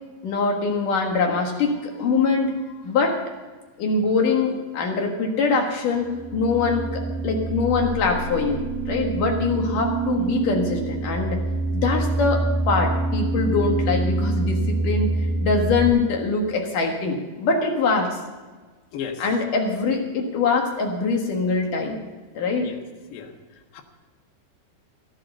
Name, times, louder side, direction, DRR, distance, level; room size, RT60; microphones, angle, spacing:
voice 1, 0.2-2.5 2.8-3.2 3.8-11.4 11.7-15.1 15.4-18.2 19.2-22.0 22.3-22.7, left 4 dB, 60° left, 2 dB, 2.9 m, -23 dB
sound 1, 5.8-15.9, right 3 dB, 85° right, 3.9 m, -26 dB
voice 2, 18.9-19.2 22.6-22.8 23.1-23.3 23.7-23.8, left 7 dB, 90° left, 4 dB, 3.6 m, -33 dB
16.0 x 10.5 x 6.7 m, 1.3 s
omnidirectional pair, 4.7 m